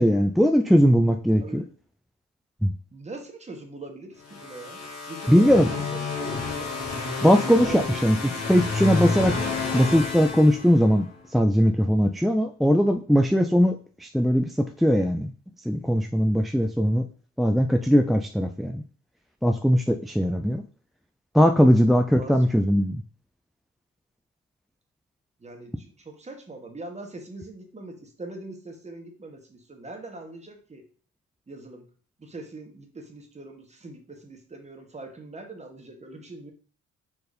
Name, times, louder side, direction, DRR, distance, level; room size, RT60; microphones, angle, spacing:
voice 1, 0.0-1.6 2.6-2.7 5.3-5.7 7.2-8.2 8.5-9.4 9.7-11.1 11.3-15.3 15.7-17.0 17.4-18.8 19.4-20.6 21.3-23.0, equal, ahead, 5 dB, 0.3 m, -20 dB
voice 2, 1.4-1.7 2.9-4.8 5.1-6.7 7.6-8.4 20.4-20.7 21.9-22.5 25.4-30.8 31.5-31.9 32.2-36.5, right 2 dB, 20° right, 3 dB, 1.6 m, -42 dB
sound 1, 4.2-11.1, left 4 dB, 55° left, 2.2 m, -30 dB
4.3 x 4.3 x 5.1 m, 0.41 s
cardioid pair, 90°, 30 cm